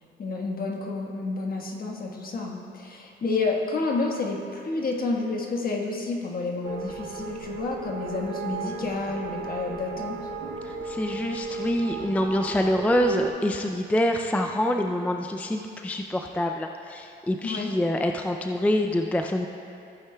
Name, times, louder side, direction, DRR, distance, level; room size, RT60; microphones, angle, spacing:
voice 1, 0.2-10.2 17.4-17.7, left 3 dB, 45° left, 0 dB, 1.4 m, -30 dB
sound 1, 6.6-13.3, right 4 dB, 85° right, 0.9 m, -35 dB
voice 2, 10.6-19.5, left 1 dB, 5° left, 4 dB, 0.4 m, -26 dB
14.5 x 8.9 x 2.3 m, 2.7 s
cardioid pair, 90°, 20 cm